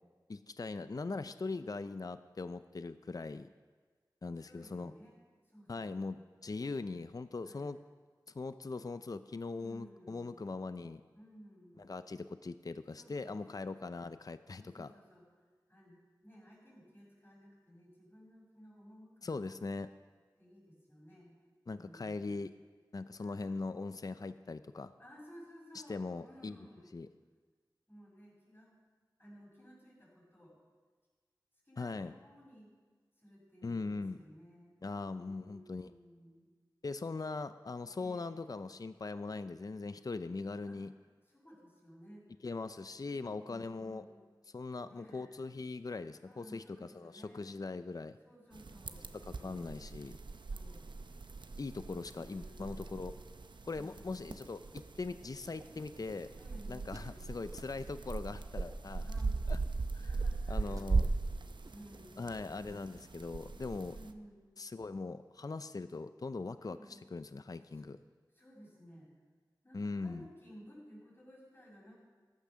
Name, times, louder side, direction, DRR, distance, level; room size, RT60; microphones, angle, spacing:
voice 1, 0.3-3.5 4.2-4.9 5.7-7.8 8.3-11.0 11.8-14.9 19.2-19.9 21.7-22.5 22.9-24.9 25.9-26.6 26.9-27.1 31.8-32.1 33.6-34.2 34.8-35.9 36.8-40.9 42.4-44.0 44.5-48.2 49.4-50.2 51.6-53.1 53.7-56.3 56.7-59.1 59.5-59.6 59.9-60.1 60.5-61.0 62.2-64.0 64.6-68.0 69.7-70.3, left 3 dB, 50° left, 12 dB, 0.5 m, -41 dB
voice 2, 4.5-5.1 5.4-6.2 7.4-7.7 9.6-10.6 11.1-11.9 13.0-13.7 14.5-15.2 15.7-16.0 16.2-19.6 20.4-21.4 21.7-22.4 23.2-23.5 25.0-26.9 27.9-28.8 29.2-30.6 31.6-32.7 33.2-34.8 35.1-36.5 37.9-38.4 40.6-40.8 41.3-42.3 43.0-44.2 44.8-45.5 46.2-47.5 48.2-49.8 50.5-50.9 52.1-53.2 53.7-54.2 56.4-57.3 59.0-59.4 60.0-62.2 63.8-64.6 66.6-67.1 67.7-68.0 68.3-69.1 69.6-71.9, equal, 25° left, -9 dB, 5.5 m, -57 dB
sound 1, 48.5-64.1, right 3 dB, 80° right, 0.7 m, -39 dB
sound 2, 54.4-54.8 55.1-57.0 57.5-57.9 58.5-59.3 59.6-59.7 60.2-60.3 60.6-61.2 61.5-62.0 62.4-62.7, right 2 dB, 50° right, 0.9 m, -54 dB
14.5 x 10.5 x 6.3 m, 1.5 s
wide cardioid pair, 55°, 8 cm